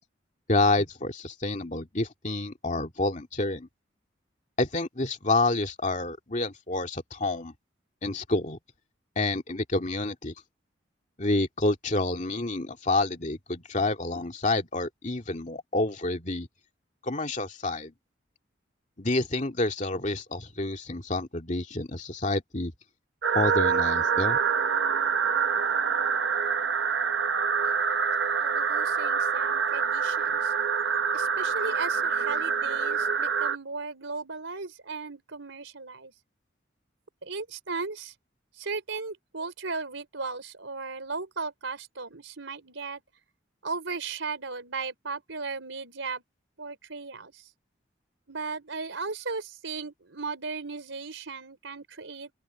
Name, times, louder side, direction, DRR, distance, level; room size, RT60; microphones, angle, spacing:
voice 1, 0.5-3.7 4.6-7.5 8.0-8.6 9.2-10.3 11.2-16.5 17.0-17.9 19.0-22.7 23.3-24.4, left 2 dB, 40° left, 2.3 m, -28 dB
sound 1, 23.2-33.6, right 6 dB, 70° right, 0.8 m, -26 dB
voice 2, 28.4-30.5 31.1-36.1 37.2-38.1 38.6-43.0 43.6-46.2 46.6-47.4 48.3-52.3, right 4 dB, 90° right, 4.2 m, -36 dB
open air
head